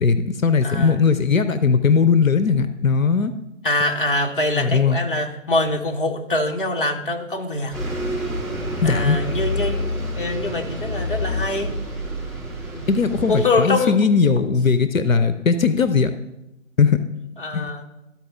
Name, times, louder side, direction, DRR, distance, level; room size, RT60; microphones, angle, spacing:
voice 1, 0.0-3.3 4.5-5.0 8.8-9.2 12.9-16.1 16.8-17.0 17.5-17.7, left 5 dB, 75° left, 11 dB, 0.6 m, -18 dB
voice 2, 0.6-1.0 3.6-7.8 8.8-9.8 10.1-11.7 12.7-12.9 13.3-14.0 17.4-17.8, left 2 dB, 40° left, 2 dB, 0.8 m, -24 dB
Bus, 7.7-13.5, left 1 dB, ahead, 2.8 m, -28 dB
13.0 x 4.4 x 3.4 m, 0.91 s
figure-of-eight pair, 160°, 40 cm